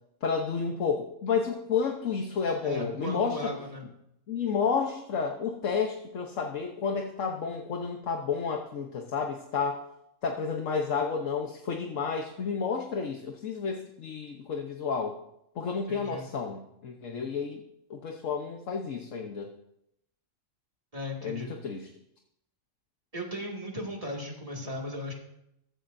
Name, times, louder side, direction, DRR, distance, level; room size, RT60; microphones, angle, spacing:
voice 1, 0.2-3.5 4.3-9.8 10.2-15.2 15.5-17.6 17.9-19.5 21.2-21.9, left 5 dB, 70° left, 2 dB, 1.4 m, -31 dB
voice 2, 2.6-3.9 15.9-16.3 20.9-21.5 23.1-25.1, equal, 25° right, -1 dB, 2.3 m, -36 dB
14.5 x 14.0 x 2.7 m, 0.81 s
omnidirectional pair, 1.4 m